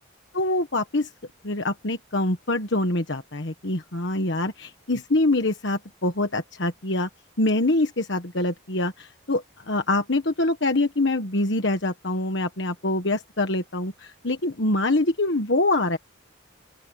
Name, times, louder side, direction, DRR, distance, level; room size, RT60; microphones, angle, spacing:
voice 1, 0.3-1.1 1.4-7.1 7.4-16.0, left 2 dB, 60° left, 1.4 m, -25 dB
open air
head